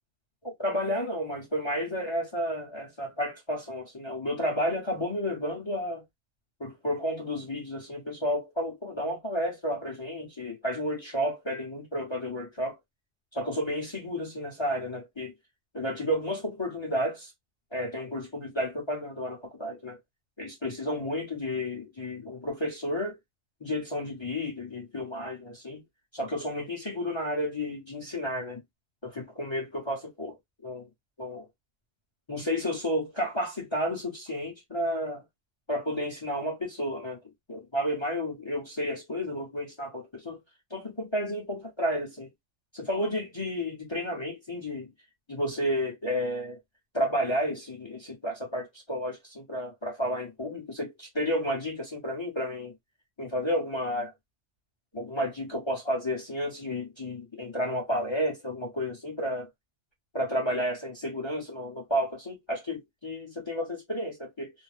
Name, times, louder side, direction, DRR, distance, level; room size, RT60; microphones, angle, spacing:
voice 1, 0.4-6.0 6.6-12.8 13.3-15.3 15.7-17.3 17.7-20.0 20.4-23.2 23.6-25.8 26.1-28.6 29.0-30.9 31.2-31.5 32.3-35.2 35.7-37.2 37.5-40.4 40.7-42.3 42.7-44.9 45.3-46.6 46.9-52.7 53.2-54.1 54.9-59.5 60.1-64.5, equal, 25° left, 0.8 m, -31 dB
2.6 x 2.1 x 3.1 m
omnidirectional pair, 1.3 m